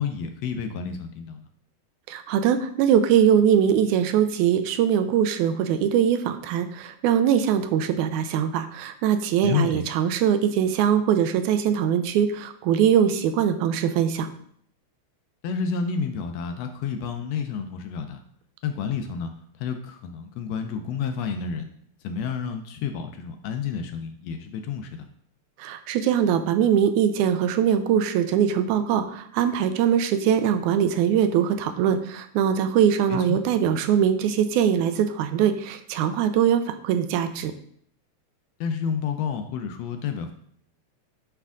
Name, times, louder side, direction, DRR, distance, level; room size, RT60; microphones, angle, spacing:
voice 1, 0.0-1.5 9.4-9.8 15.4-18.2 18.6-19.3 19.6-21.7 22.0-25.1 33.1-33.4 38.6-40.3, left 6 dB, 75° left, 6 dB, 1.6 m, -30 dB
voice 2, 2.1-14.3 25.6-37.5, right 9 dB, 90° right, 9 dB, 2.0 m, -22 dB
9.6 x 3.3 x 3.6 m, 0.65 s
omnidirectional pair, 3.3 m